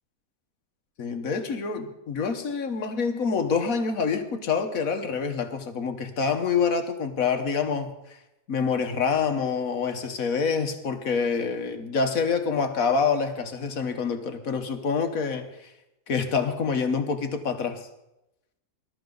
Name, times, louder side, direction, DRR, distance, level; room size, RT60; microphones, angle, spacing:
voice 1, 1.0-8.2 8.5-15.7 16.1-17.8, left 5 dB, 70° left, 7 dB, 1.6 m, -26 dB
20.0 x 12.0 x 3.9 m, 0.89 s
omnidirectional pair, 1.6 m